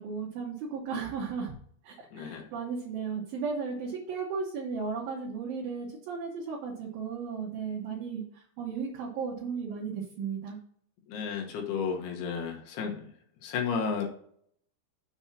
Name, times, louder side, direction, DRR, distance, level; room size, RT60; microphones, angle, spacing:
voice 1, 0.0-1.5 1.8-10.6, right 5 dB, 65° right, -2 dB, 2.6 m, -35 dB
voice 2, 2.1-2.5 11.1-13.1 13.4-14.1, left 6 dB, 70° left, 2 dB, 2.8 m, -32 dB
7.1 x 4.3 x 5.8 m, 0.62 s
omnidirectional pair, 5.2 m